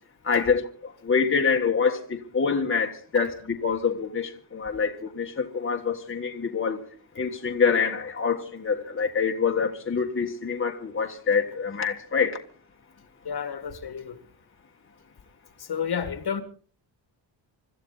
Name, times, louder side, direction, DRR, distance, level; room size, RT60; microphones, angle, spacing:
voice 1, 0.2-6.8 7.2-12.4, left 5 dB, 25° left, 1.6 m, -26 dB
voice 2, 13.2-14.2 15.6-16.4, left 7 dB, 55° left, 1.9 m, -31 dB
25.5 x 14.0 x 4.0 m
wide cardioid pair, 175°, 46 cm